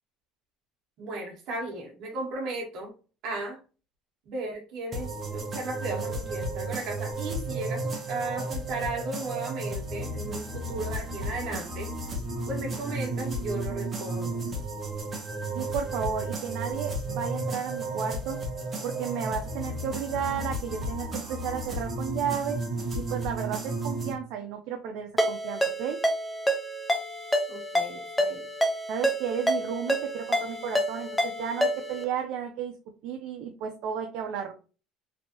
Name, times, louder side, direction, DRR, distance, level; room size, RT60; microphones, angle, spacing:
voice 1, 1.0-2.9 3.2-3.6 4.3-11.9 12.5-14.4 27.5-28.4, right 2 dB, 55° right, 1 dB, 1.1 m, -35 dB
sound 1, 4.9-24.1, right 2 dB, 20° right, 0.7 m, -33 dB
voice 2, 15.5-18.4 18.8-22.6 22.9-26.0 28.9-32.7 33.0-34.5, right 7 dB, 70° right, 4 dB, 0.4 m, -33 dB
Ringtone, 25.2-32.0, equal, 5° left, 0.4 m, -28 dB
3.1 x 2.6 x 2.8 m, 0.35 s
cardioid pair, 170°, 0 cm